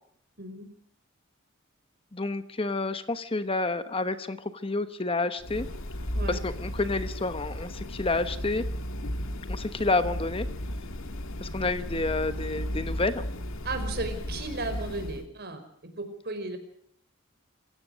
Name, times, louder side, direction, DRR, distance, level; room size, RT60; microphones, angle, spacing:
voice 1, 0.4-0.7 6.1-6.4 13.6-15.6 16.0-16.6, right 2 dB, 50° right, 8 dB, 5.0 m, -35 dB
voice 2, 2.1-5.7 6.3-8.6 9.5-10.5 11.4-13.3, left 3 dB, 25° left, 11 dB, 1.1 m, -29 dB
sound 1, 5.4-15.2, equal, 85° left, 2.0 m, -34 dB
27.0 x 16.5 x 6.5 m, 0.62 s
head